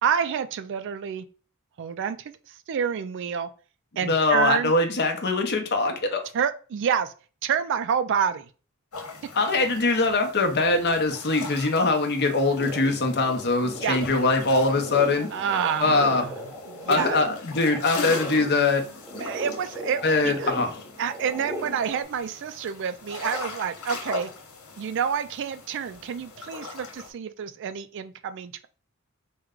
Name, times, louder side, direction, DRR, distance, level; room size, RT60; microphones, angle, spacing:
voice 1, 0.0-1.3 1.8-3.5 4.0-4.7 6.3-7.1 7.4-8.5 13.8-14.0 15.3-16.3 16.7-17.2 19.2-20.5 21.0-24.3 24.8-28.7, right 7 dB, 55° right, 12 dB, 0.3 m, -28 dB
voice 2, 4.0-6.2 9.4-15.3 15.8-16.2 16.9-18.8 20.0-20.8, left 3 dB, 50° left, 4 dB, 0.8 m, -22 dB
sound 1, 8.9-27.1, left 4 dB, 90° left, 1.1 m, -40 dB
sound 2, 12.6-22.0, left 1 dB, 5° left, 1.0 m, -38 dB
4.5 x 2.2 x 3.7 m, 0.38 s
head